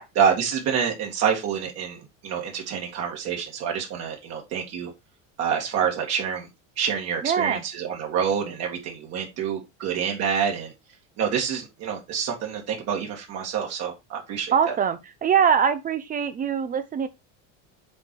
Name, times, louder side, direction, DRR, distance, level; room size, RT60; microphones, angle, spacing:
voice 1, 0.2-4.9 5.4-6.5 6.8-10.7 11.2-14.8, right 7 dB, 50° right, 2.1 m, -27 dB
voice 2, 7.2-7.6 14.5-17.1, right 7 dB, 25° right, 0.6 m, -23 dB
7.7 x 4.6 x 4.6 m
cardioid pair, 155°, 34 cm